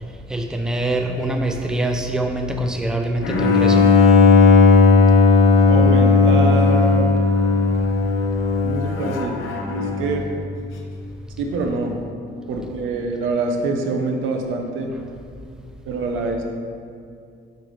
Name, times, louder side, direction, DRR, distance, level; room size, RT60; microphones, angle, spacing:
voice 1, 0.3-3.8, right 1 dB, 5° right, 3 dB, 0.5 m, -24 dB
Bowed string instrument, 3.2-10.2, left 4 dB, 85° left, 0.8 m, -15 dB
voice 2, 5.7-7.1 8.6-9.4 9.8-10.3 11.4-12.0 12.5-14.9 15.9-16.4, right 3 dB, 85° right, 3 dB, 0.7 m, -25 dB
5.0 x 4.6 x 4.8 m, 2.3 s
cardioid pair, 90°, 20 cm